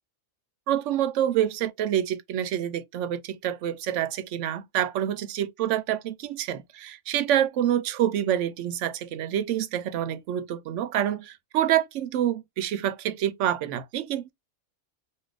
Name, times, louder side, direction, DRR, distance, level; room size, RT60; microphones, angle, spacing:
voice 1, 0.7-14.3, right 11 dB, 70° right, 0.9 m, -27 dB
2.8 x 2.4 x 3.2 m
omnidirectional pair, 1.3 m